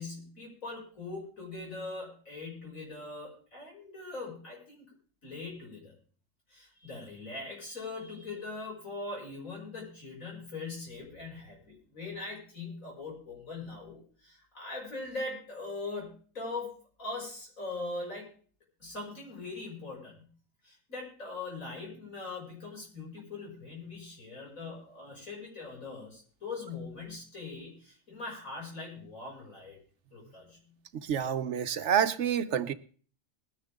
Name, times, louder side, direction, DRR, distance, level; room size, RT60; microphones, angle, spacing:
voice 1, 0.0-4.9 5.2-5.9 6.5-18.3 18.8-20.3 20.6-29.8 30.1-30.6, left 3 dB, 85° left, 6.6 m, -41 dB
voice 2, 30.9-32.7, right 8 dB, 65° right, 1.0 m, -28 dB
20.5 x 10.5 x 3.6 m
omnidirectional pair, 1.4 m